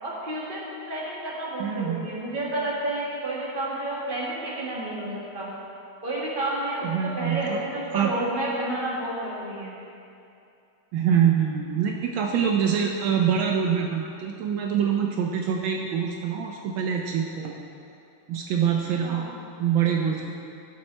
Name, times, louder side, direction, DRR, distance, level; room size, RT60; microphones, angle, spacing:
voice 1, 0.0-5.5 6.0-6.9 7.2-9.7 19.0-19.2, right 1 dB, 25° right, -6 dB, 2.2 m, -30 dB
voice 2, 1.6-2.1 6.8-7.6 7.9-8.1 10.9-17.6 18.3-19.3 19.6-20.3, right 8 dB, 80° right, 1 dB, 1.4 m, -25 dB
16.5 x 7.2 x 3.3 m, 2.6 s
omnidirectional pair, 2.2 m